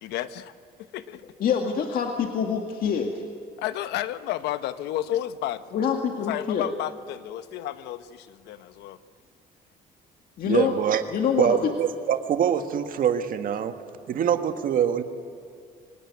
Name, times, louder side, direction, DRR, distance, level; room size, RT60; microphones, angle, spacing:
voice 1, 0.0-1.2 3.6-5.6 6.2-9.0, left 13 dB, 85° left, 12 dB, 1.1 m, -32 dB
voice 2, 1.4-3.1 5.7-6.7 10.4-10.7 11.1-11.7, left 7 dB, 60° left, 3 dB, 2.0 m, -25 dB
voice 3, 10.5-11.0 11.4-13.7 14.1-15.0, right 8 dB, 55° right, 8 dB, 1.7 m, -24 dB
24.5 x 17.5 x 9.5 m, 2.2 s
cardioid pair, 110°, 17 cm